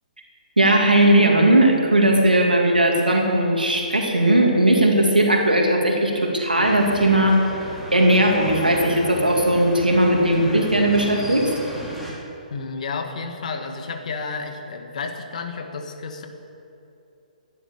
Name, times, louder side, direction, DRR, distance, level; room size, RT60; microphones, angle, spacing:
voice 1, 0.6-7.5 7.9-11.5, right 1 dB, 90° right, 1 dB, 2.5 m, -18 dB
sound 1, 6.6-12.1, equal, ahead, 3.1 m, -34 dB
voice 2, 12.5-16.3, left 4 dB, 55° left, 5 dB, 1.9 m, -31 dB
15.0 x 11.0 x 7.1 m, 2.8 s
figure-of-eight pair, 130°, 5 cm